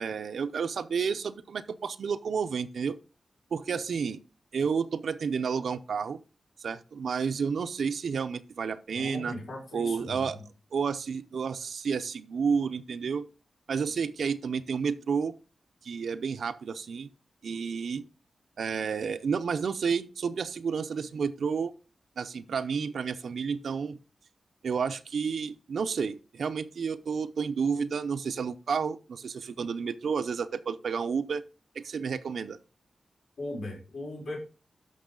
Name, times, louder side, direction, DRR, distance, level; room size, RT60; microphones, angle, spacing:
voice 1, 0.0-3.0 3.5-4.2 4.5-6.2 6.6-9.3 9.7-10.4 10.7-13.3 13.7-15.3 15.8-17.1 17.4-18.0 18.6-21.7 22.2-24.0 24.6-31.4 31.7-32.6, right 6 dB, 70° right, 12 dB, 0.6 m, -31 dB
voice 2, 8.9-10.3 33.4-34.4, left 1 dB, 70° left, -1 dB, 4.9 m, -38 dB
11.5 x 6.1 x 3.8 m, 0.33 s
wide cardioid pair, 170°, 0 cm